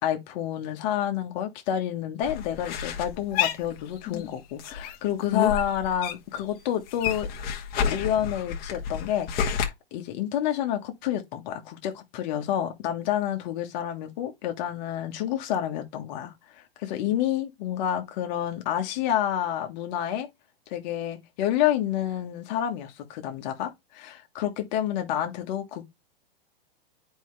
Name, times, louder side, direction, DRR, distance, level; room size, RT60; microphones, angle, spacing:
voice 1, 0.0-7.3 7.9-20.3 20.7-25.8, left 11 dB, 50° left, 1.5 m, -29 dB
sound 1, 2.2-4.3 4.6-6.4 6.7-9.7, left 8 dB, 30° left, 1.4 m, -30 dB
9.1 x 4.6 x 3.3 m
hypercardioid pair, 130°, 29 cm